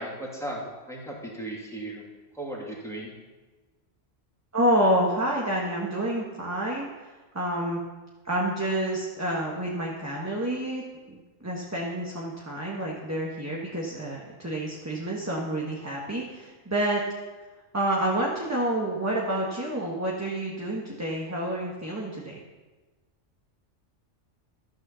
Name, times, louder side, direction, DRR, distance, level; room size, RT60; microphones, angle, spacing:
voice 1, 0.0-2.1 2.3-3.1, right 1 dB, ahead, -4 dB, 2.5 m, -36 dB
voice 2, 4.5-7.8 8.2-17.0 17.7-22.4, right 1 dB, 15° right, -3 dB, 1.3 m, -28 dB
12.5 x 6.5 x 6.9 m, 1.2 s
omnidirectional pair, 1.3 m